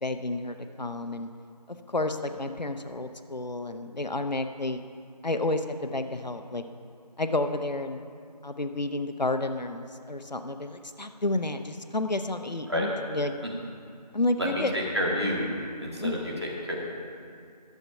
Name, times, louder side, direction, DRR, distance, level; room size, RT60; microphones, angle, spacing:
voice 1, 0.0-1.3 1.7-4.8 5.2-6.6 7.2-8.0 8.4-13.3 14.1-14.7 16.0-16.3, left 2 dB, 80° left, 8 dB, 0.9 m, -30 dB
voice 2, 14.4-15.5 15.8-16.7, equal, 40° right, -3 dB, 2.0 m, -29 dB
11.5 x 7.5 x 5.7 m, 2.3 s
figure-of-eight pair, 175°, 21 cm